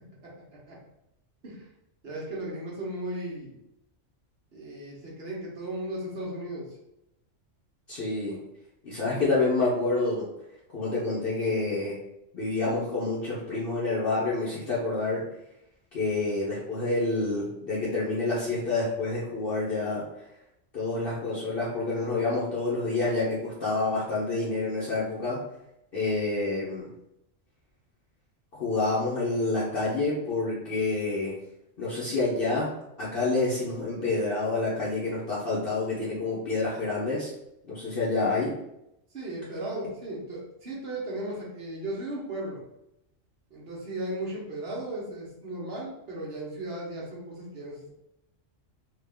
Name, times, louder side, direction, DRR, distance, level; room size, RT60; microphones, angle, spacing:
voice 1, 2.0-3.6 4.5-6.7 39.1-42.6 43.5-47.9, right 1 dB, 55° right, -4 dB, 1.3 m, -36 dB
voice 2, 7.9-8.4 8.8-10.2 10.7-12.0 12.3-15.2 15.9-20.0 20.7-25.4 25.9-26.9 28.5-31.4 31.8-32.7 33.0-37.3 37.7-38.5, left 3 dB, 50° left, -7 dB, 1.0 m, -28 dB
3.7 x 2.5 x 3.4 m, 0.83 s
omnidirectional pair, 1.3 m